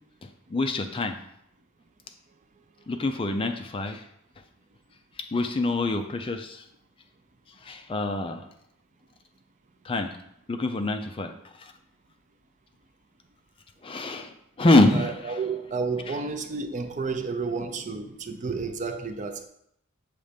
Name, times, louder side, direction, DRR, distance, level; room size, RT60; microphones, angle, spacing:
voice 1, 0.2-1.2 2.9-4.0 5.3-6.6 7.6-8.4 9.8-10.1 10.5-11.3 11.6-11.7 13.8-15.4 16.1-16.2, left 2 dB, 25° left, 7 dB, 0.4 m, -25 dB
voice 2, 14.9-19.5, right 4 dB, 35° right, 7 dB, 0.5 m, -31 dB
6.7 x 3.2 x 5.1 m, 0.74 s
head